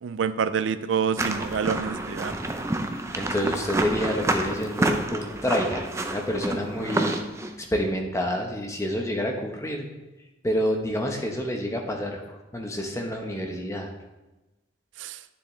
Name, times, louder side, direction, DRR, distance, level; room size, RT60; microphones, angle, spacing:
voice 1, 0.0-2.3 15.0-15.2, right 6 dB, 80° right, 13 dB, 0.4 m, -27 dB
sound 1, 1.2-7.5, right 2 dB, 15° right, 0.5 m, -28 dB
voice 2, 3.1-7.1 7.7-9.9 10.4-13.9, equal, 15° left, 2 dB, 0.9 m, -28 dB
9.6 x 6.9 x 3.2 m, 1.1 s
head